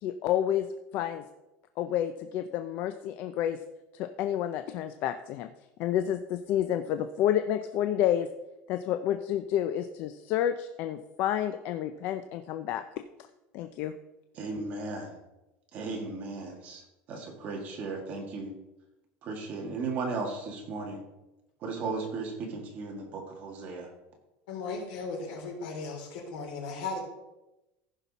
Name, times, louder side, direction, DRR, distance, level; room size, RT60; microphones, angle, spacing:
voice 1, 0.0-0.7 0.9-1.2 1.8-3.6 3.9-5.5 5.8-8.3 8.7-12.8 13.5-13.9, left 11 dB, 45° left, 8 dB, 0.5 m, -29 dB
voice 2, 14.3-15.2 15.7-18.5 19.2-21.0 21.6-23.9, right 3 dB, 35° right, 1 dB, 1.8 m, -36 dB
voice 3, 24.5-27.0, left 4 dB, 85° left, -1 dB, 3.9 m, -36 dB
15.0 x 5.8 x 4.1 m, 0.98 s
cardioid pair, 175°, 5 cm